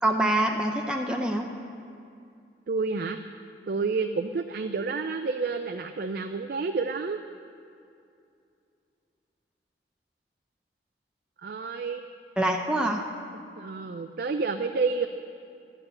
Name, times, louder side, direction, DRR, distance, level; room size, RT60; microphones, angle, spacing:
voice 1, 0.0-1.5 12.4-13.1, right 1 dB, 5° right, 1 dB, 0.6 m, -25 dB
voice 2, 2.7-3.2 3.7-7.2 11.4-12.0 13.6-15.1, right 4 dB, 55° right, 7 dB, 0.4 m, -29 dB
11.5 x 6.7 x 8.7 m, 2.5 s
head